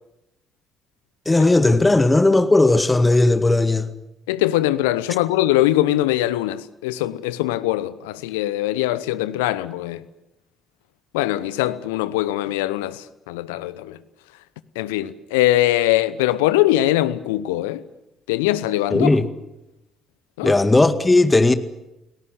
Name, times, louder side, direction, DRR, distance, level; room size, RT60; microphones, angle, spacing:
voice 1, 1.3-3.9 18.9-19.3 20.4-21.5, left 2 dB, 20° left, 2.0 m, -16 dB
voice 2, 4.3-10.0 11.1-14.0 14.7-17.8 18.3-19.2 20.4-20.5, left 15 dB, 75° left, 0.9 m, -22 dB
29.5 x 18.0 x 8.1 m
figure-of-eight pair, 45°, 0 cm